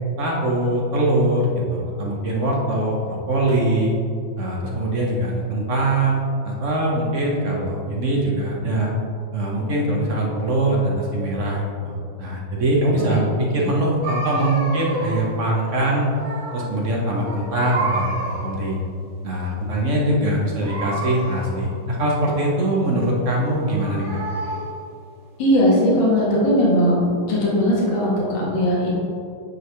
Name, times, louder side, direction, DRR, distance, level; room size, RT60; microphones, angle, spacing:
voice 1, 0.2-1.5 1.7-3.9 4.4-6.2 6.4-8.9 9.3-16.1 16.5-18.1 18.4-18.8 19.2-24.2, right 1 dB, 50° right, -2 dB, 0.9 m, -22 dB
sound 1, 14.0-15.4 15.7-16.8 17.1-18.6 20.6-21.7 23.3-24.8, right 2 dB, 70° right, 1.8 m, -30 dB
voice 2, 25.4-27.0 27.3-28.9, equal, 65° left, -6 dB, 2.2 m, -18 dB
9.0 x 4.7 x 3.3 m, 2.4 s
omnidirectional pair, 2.3 m